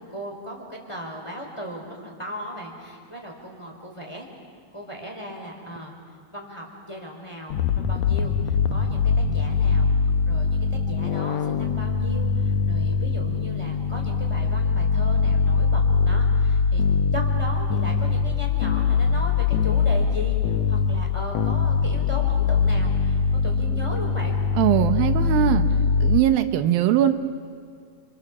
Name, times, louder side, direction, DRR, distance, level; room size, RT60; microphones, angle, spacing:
voice 1, 0.1-4.3 4.7-5.9 6.3-9.9 10.2-16.8 17.1-24.4 25.7-25.9, equal, 10° left, 0 dB, 3.8 m, -37 dB
sound 1, 7.5-26.2, left 5 dB, 85° left, 1.6 m, -22 dB
voice 2, 24.6-25.7 26.0-27.1, right 12 dB, 80° right, 9 dB, 2.8 m, -20 dB
30.0 x 26.5 x 7.3 m, 2.2 s
omnidirectional pair, 4.2 m